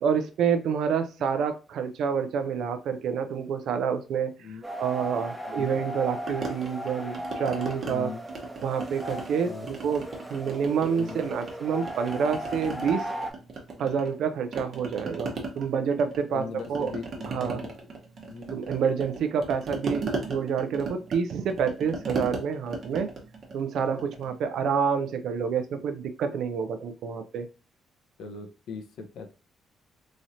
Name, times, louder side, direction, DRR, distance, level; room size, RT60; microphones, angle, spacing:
voice 1, 0.0-4.3 4.8-8.1 8.6-13.1 13.8-16.9 17.3-17.6 18.5-23.1 23.5-27.5, right 6 dB, 75° right, 9 dB, 0.4 m, -28 dB
sound 1, 4.6-13.3, right 1 dB, 10° right, 0.8 m, -37 dB
sound 2, 6.3-7.9 8.3-9.4 9.7-11.5 11.8-14.2 14.5-24.3, right 3 dB, 55° right, 0.9 m, -37 dB
voice 2, 7.8-8.2 9.4-9.7 11.0-11.3 16.3-17.7 18.2-18.6 28.2-29.3, left 5 dB, 75° left, 6 dB, 0.6 m, -40 dB
3.0 x 2.7 x 2.5 m, 0.32 s
supercardioid pair, 65°, 0 cm